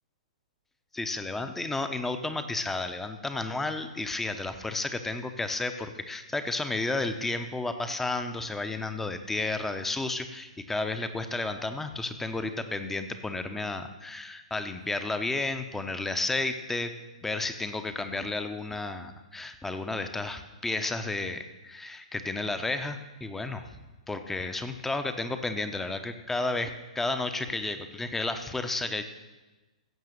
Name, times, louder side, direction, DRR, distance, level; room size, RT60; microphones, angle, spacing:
voice 1, 0.9-16.9 17.2-23.8 24.1-29.0, left 2 dB, 5° left, 8 dB, 0.9 m, -32 dB
16.0 x 6.7 x 6.6 m, 1.1 s
figure-of-eight pair, 115°, 4 cm